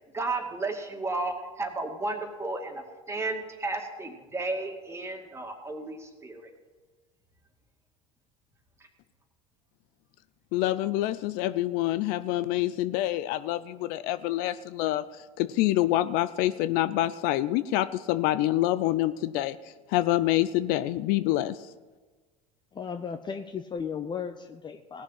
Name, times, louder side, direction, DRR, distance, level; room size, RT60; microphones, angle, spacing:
voice 1, 0.1-6.5, right 2 dB, 15° right, 3 dB, 2.3 m, -33 dB
voice 2, 10.5-15.0 15.4-19.6 19.9-21.6, left 15 dB, 60° left, 14 dB, 0.5 m, -26 dB
voice 3, 22.7-25.0, left 6 dB, 25° left, 8 dB, 0.7 m, -35 dB
17.5 x 6.8 x 7.4 m, 1.3 s
hypercardioid pair, 80°, 17 cm